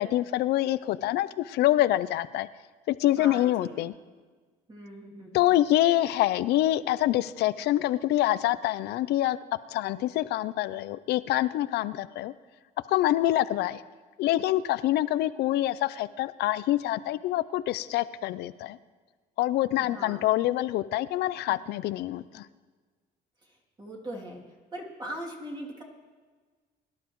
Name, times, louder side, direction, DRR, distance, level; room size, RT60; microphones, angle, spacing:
voice 1, 0.0-2.5 2.9-3.9 5.3-9.4 9.7-12.3 12.9-13.8 14.2-18.8 19.4-22.5, left 14 dB, 75° left, 16 dB, 0.5 m, -26 dB
voice 2, 3.2-3.8 4.7-5.6 19.8-20.3 21.5-21.6 23.4-24.4 24.7-25.8, right 1 dB, 25° right, -2 dB, 2.7 m, -41 dB
22.5 x 11.5 x 3.1 m, 1.4 s
cardioid pair, 110°, 17 cm